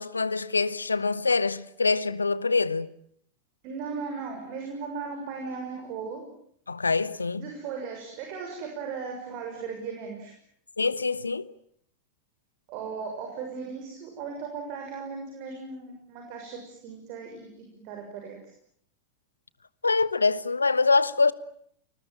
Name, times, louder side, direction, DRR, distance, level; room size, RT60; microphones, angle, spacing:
voice 1, 0.0-2.9 6.7-7.5 10.8-11.5 19.8-21.3, left 4 dB, 80° left, 1.1 m, -25 dB
voice 2, 3.6-6.2 7.3-10.3 12.7-18.4, right 5 dB, 45° right, 6.6 m, -37 dB
29.5 x 21.0 x 9.1 m
figure-of-eight pair, 90°, 0 cm